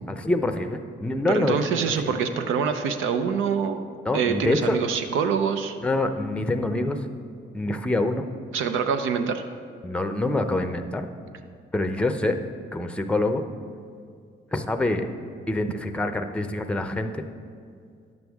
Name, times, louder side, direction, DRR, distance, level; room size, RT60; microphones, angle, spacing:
voice 1, 0.2-1.6 2.0-2.2 4.0-4.8 5.8-7.0 7.5-8.2 9.8-11.1 11.7-12.4 12.7-13.4 14.5-15.1 15.5-17.3, left 2 dB, 5° left, 7 dB, 0.6 m, -25 dB
voice 2, 1.3-3.8 4.1-5.8 8.5-9.4, right 6 dB, 80° right, 7 dB, 0.6 m, -25 dB
10.5 x 7.8 x 3.5 m, 2.2 s
cardioid pair, 90°, 20 cm